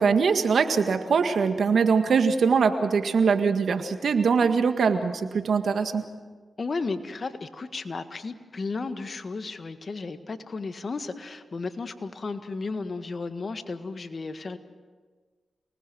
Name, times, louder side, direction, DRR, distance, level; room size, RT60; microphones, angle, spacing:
voice 1, 0.0-6.0, right 5 dB, 75° right, 7 dB, 1.8 m, -22 dB
voice 2, 6.6-14.6, left 3 dB, 55° left, 9 dB, 1.7 m, -34 dB
28.5 x 19.5 x 6.3 m, 1.5 s
supercardioid pair, 45°, 0 cm